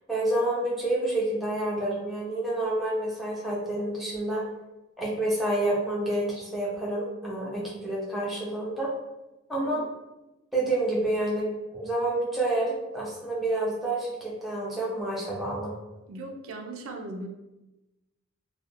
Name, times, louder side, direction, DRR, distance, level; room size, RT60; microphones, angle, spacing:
voice 1, 0.1-4.4 5.0-8.9 9.5-9.8 10.5-15.7, right 1 dB, ahead, -6 dB, 0.5 m, -28 dB
voice 2, 16.1-17.3, right 2 dB, 85° right, 3 dB, 0.4 m, -38 dB
2.4 x 2.1 x 2.7 m, 1.0 s
head